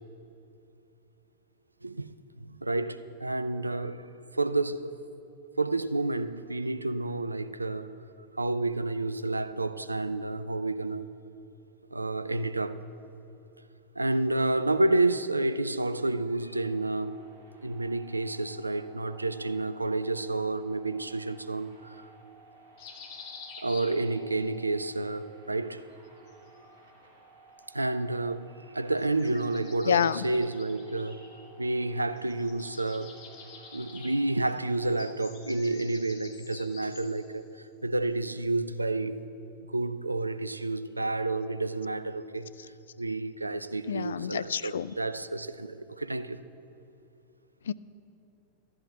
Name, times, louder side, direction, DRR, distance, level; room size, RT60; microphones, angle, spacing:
voice 1, 1.8-4.0 4.3-5.0 5.6-7.9 8.4-11.1 11.9-12.8 14.0-17.2 17.6-22.1 23.6-25.8 27.7-31.3 31.6-33.2 33.7-37.4 37.8-39.2 39.7-42.5 43.0-46.4, right 2 dB, 85° right, 0.4 m, -30 dB
sound 1, 16.5-35.1, right 2 dB, 55° right, 2.6 m, -56 dB
sound 2, 22.8-24.5 25.9-27.0 28.9-31.9 32.2-37.3, left 5 dB, 45° left, 1.7 m, -49 dB
voice 2, 29.9-30.2 43.9-44.9 47.7-47.8, left 8 dB, 65° left, 0.3 m, -28 dB
13.0 x 7.7 x 7.9 m
figure-of-eight pair, 90°, 0 cm